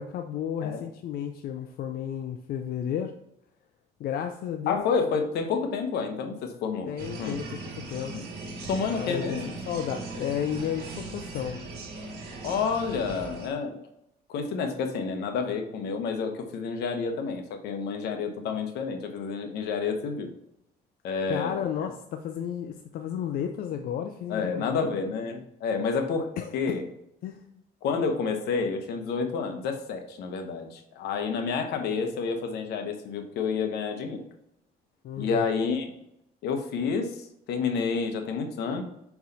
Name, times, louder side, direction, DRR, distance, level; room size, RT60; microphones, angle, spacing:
voice 1, 0.0-3.2 4.0-4.9 6.9-8.3 8.9-9.4 9.7-11.6 21.3-25.1 26.4-26.5 27.2-27.5 35.0-35.5, left 9 dB, 60° left, 6 dB, 0.5 m, -33 dB
voice 2, 4.7-7.4 8.1-8.2 8.6-9.6 12.4-13.8 14.3-20.3 21.0-21.6 24.3-26.3 26.5-26.8 27.8-34.2 35.2-35.9 36.4-38.8, left 5 dB, 80° left, 6 dB, 1.0 m, -29 dB
sound 1, 7.0-13.5, right 3 dB, 65° right, 1.7 m, -39 dB
5.4 x 4.7 x 4.0 m, 0.80 s
cardioid pair, 110°, 17 cm